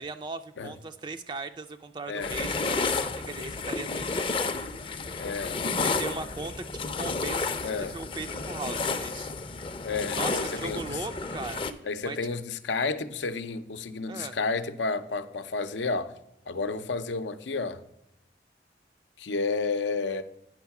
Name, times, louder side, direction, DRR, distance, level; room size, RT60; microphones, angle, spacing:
voice 1, 0.0-4.5 5.8-9.3 10.2-11.7 12.0-12.2 14.1-14.4, right 3 dB, 25° right, 0.4 m, -38 dB
sound 1, 2.2-11.7, left 4 dB, 30° left, 0.5 m, -31 dB
voice 2, 5.2-5.6 7.6-7.9 9.8-11.1 11.8-16.1 16.5-17.8 19.2-20.2, left 4 dB, 90° left, 0.6 m, -31 dB
9.0 x 5.5 x 5.8 m
head